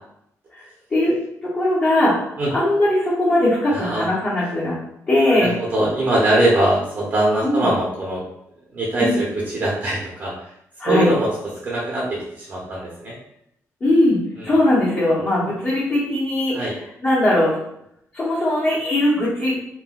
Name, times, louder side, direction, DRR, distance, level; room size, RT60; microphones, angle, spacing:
voice 1, 1.4-2.1 2.5-4.8 5.1-5.5 7.4-7.7 9.0-9.2 10.8-11.1 13.8-14.2 14.4-16.7 17.0-17.6 18.1-19.6, left 1 dB, 35° left, -10 dB, 0.8 m, -19 dB
voice 2, 5.4-8.2 8.7-10.3 10.8-11.3 11.6-13.1 16.5-16.7, right 1 dB, 40° right, -5 dB, 0.6 m, -21 dB
3.6 x 2.1 x 2.3 m, 0.76 s
wide cardioid pair, 175°, 6 cm